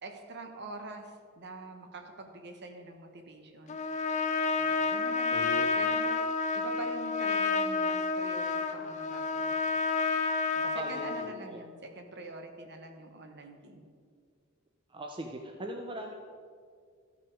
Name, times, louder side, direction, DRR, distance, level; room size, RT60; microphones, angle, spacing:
voice 1, 0.0-3.8 4.6-6.2 6.5-9.6 10.5-13.8, right 2 dB, 50° right, 5 dB, 1.1 m, -45 dB
Trumpet, 3.7-11.3, left 4 dB, 35° left, 0.5 m, -30 dB
voice 2, 5.3-5.7 10.6-11.6 14.9-16.1, right 1 dB, 20° right, 2 dB, 0.6 m, -40 dB
13.0 x 6.0 x 4.7 m, 2.1 s
head